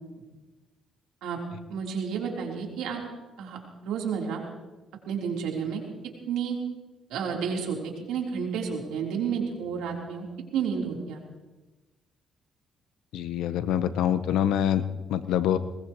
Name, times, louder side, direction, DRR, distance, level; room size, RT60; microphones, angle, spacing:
voice 1, 1.7-3.0 3.4-3.6 3.8-4.4 5.1-5.8 6.3-6.6 7.1-10.3 10.5-11.2, right 6 dB, 90° right, 0 dB, 3.7 m, -31 dB
voice 2, 13.1-14.8 15.1-15.6, left 10 dB, 90° left, 10 dB, 1.0 m, -25 dB
21.5 x 21.0 x 3.1 m, 1.1 s
cardioid pair, 90°, 0 cm